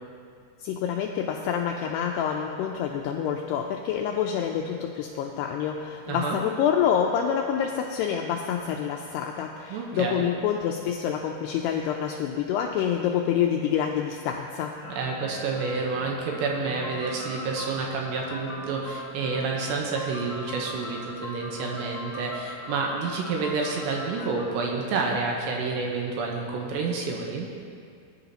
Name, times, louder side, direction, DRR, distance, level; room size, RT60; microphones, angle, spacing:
voice 1, 0.6-14.7, left 8 dB, 85° left, 2 dB, 2.3 m, -27 dB
voice 2, 6.1-6.4 9.7-10.3 14.9-27.5, right 4 dB, 75° right, 0 dB, 3.0 m, -29 dB
sound 1, 14.8-24.5, left 1 dB, 35° left, 4.2 m, -40 dB
20.0 x 10.5 x 2.9 m, 2.3 s
omnidirectional pair, 5.3 m